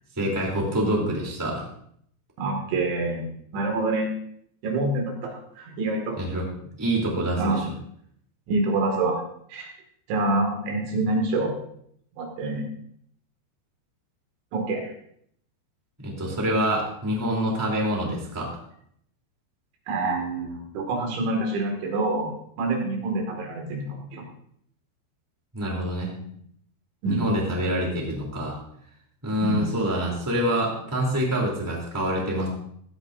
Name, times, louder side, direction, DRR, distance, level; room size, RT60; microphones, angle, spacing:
voice 1, 0.2-1.6 6.2-6.4 6.8-7.6 16.0-18.5 25.5-26.1 27.0-28.6 29.2-32.5, equal, 5° right, -2 dB, 2.5 m, -26 dB
voice 2, 2.4-3.3 3.5-4.1 4.6-6.2 7.4-7.6 8.5-9.2 9.5-9.7 10.1-11.5 12.2-12.7 14.5-14.9 19.9-24.2 27.0-27.2 29.4-29.7, right 2 dB, 75° right, 0 dB, 4.6 m, -26 dB
16.0 x 13.0 x 2.7 m, 0.69 s
omnidirectional pair, 5.3 m